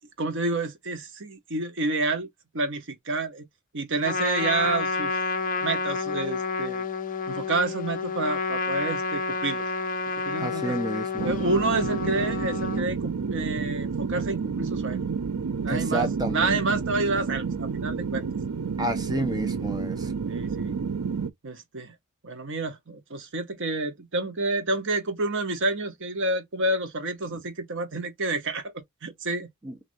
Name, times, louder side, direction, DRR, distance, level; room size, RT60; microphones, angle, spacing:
voice 1, 0.2-2.3 2.5-3.5 3.7-5.2 5.6-6.9 7.3-9.6 10.2-10.8 11.2-15.0 15.6-18.2 19.1-19.3 20.2-20.7 21.4-21.9 22.2-28.7 29.0-29.5, right 2 dB, 60° right, 1.0 m, -29 dB
Trumpet, 4.0-12.8, left 4 dB, 40° left, 0.5 m, -30 dB
voice 2, 10.4-11.3 15.7-16.6 18.8-20.1 29.6-29.7, right 1 dB, 20° right, 0.9 m, -30 dB
sound 1, 11.2-21.3, right 5 dB, 85° right, 0.6 m, -30 dB
6.2 x 2.7 x 2.6 m
head